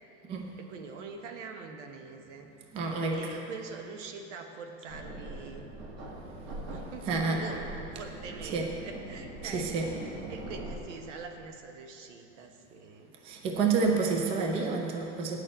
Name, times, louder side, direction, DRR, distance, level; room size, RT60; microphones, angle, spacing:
voice 1, 0.6-2.5 3.1-5.7 6.7-9.7 10.1-13.1 13.9-14.1 14.4-14.5, right 5 dB, 80° right, 4 dB, 1.3 m, -44 dB
voice 2, 2.7-3.4 7.0-7.4 8.5-8.7 9.4-9.9 13.2-15.4, right 4 dB, 15° right, 2 dB, 0.5 m, -29 dB
sound 1, 4.9-10.8, right 1 dB, 55° right, 1.7 m, -42 dB
9.1 x 6.6 x 8.6 m, 2.9 s
supercardioid pair, 170°, 36 cm